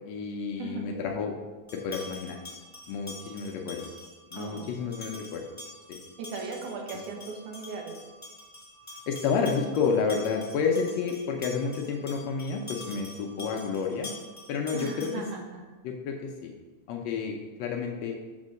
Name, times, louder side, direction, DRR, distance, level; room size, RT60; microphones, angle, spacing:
voice 1, 0.1-1.3 1.7-2.4 2.9-3.9 4.3-5.4 5.9-6.0 6.9-7.0 9.1-14.1 14.5-15.1 15.8-16.5 16.9-18.1, left 5 dB, 80° left, 2 dB, 1.5 m, -30 dB
sound 1, 1.7-15.4, left 2 dB, 15° left, 0.5 m, -45 dB
voice 2, 4.3-4.8 6.2-7.9 13.4-13.7 14.7-15.6, right 4 dB, 75° right, 2 dB, 2.3 m, -38 dB
6.5 x 3.7 x 6.3 m, 1.3 s
omnidirectional pair, 3.7 m